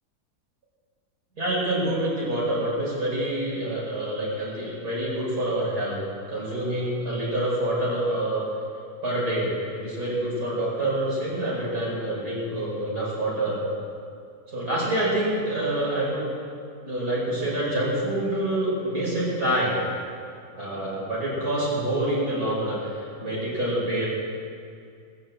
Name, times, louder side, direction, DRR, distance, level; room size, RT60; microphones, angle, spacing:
voice 1, 1.4-6.0 6.3-8.4 9.0-13.6 14.5-16.2 16.8-19.8 20.5-24.1, right 1 dB, 70° right, -6 dB, 5.7 m, -27 dB
20.5 x 7.2 x 7.8 m, 2.3 s
omnidirectional pair, 1.7 m